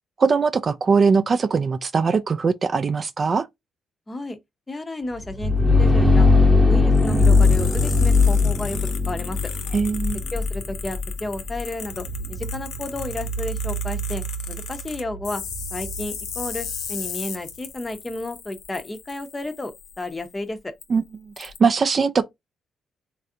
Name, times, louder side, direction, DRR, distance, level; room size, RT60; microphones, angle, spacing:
voice 1, 0.2-3.5 9.7-10.2 20.9-21.0 21.4-22.2, right 5 dB, 40° right, 0.3 m, -20 dB
voice 2, 4.1-4.4 4.7-6.3 6.7-8.8 9.1-9.4 10.3-15.4 15.7-20.7, left 2 dB, 20° left, 0.6 m, -32 dB
sound 1, 5.2-16.8, left 3 dB, 10° right, 0.9 m, -21 dB
sound 2, 6.9-20.3 20.8-20.9 21.4-21.6, left 8 dB, 85° left, 0.6 m, -36 dB
3.2 x 2.4 x 2.6 m
cardioid pair, 90°, 0 cm